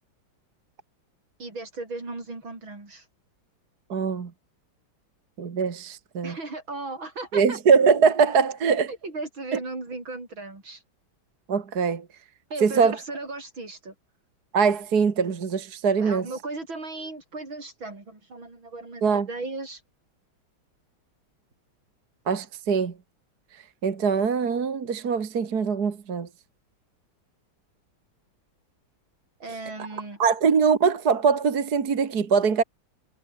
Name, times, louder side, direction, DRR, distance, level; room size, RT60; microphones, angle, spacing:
voice 1, 1.4-3.0 6.2-7.6 8.9-10.8 12.5-13.9 16.0-19.8 29.4-30.2, right 3 dB, 80° right, 7.2 m, -36 dB
voice 2, 3.9-4.3 5.4-6.4 7.3-8.9 9.5-9.6 11.5-12.1 12.6-13.0 14.5-16.3 19.0-19.3 22.3-22.9 23.8-26.3 29.8-29.9 30.2-32.6, right 5 dB, 55° right, 2.3 m, -22 dB
omnidirectional pair, 2.1 m